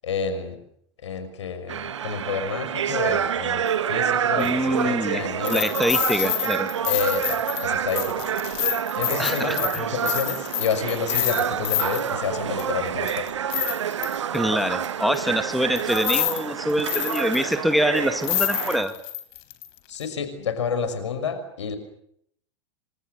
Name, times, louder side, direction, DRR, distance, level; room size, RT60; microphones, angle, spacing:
voice 1, 0.0-0.6 1.0-5.6 6.8-8.2 9.0-13.3 19.9-21.8, left 6 dB, 70° left, 10 dB, 6.0 m, -29 dB
sound 1, 1.7-18.8, right 8 dB, 70° right, 1.7 m, -28 dB
sound 2, 4.4-4.5 5.4-12.1 12.6-12.7 13.1-14.4 15.1-15.2 15.8-16.4 16.7-17.5 18.0-18.1 18.2-19.7 20.0-20.1, left 15 dB, 55° left, 4.1 m, -28 dB
voice 2, 4.4-6.7 9.2-9.9 14.3-19.0, equal, ahead, 9 dB, 1.9 m, -25 dB
28.5 x 26.0 x 6.8 m, 0.70 s
figure-of-eight pair, 90°, 16 cm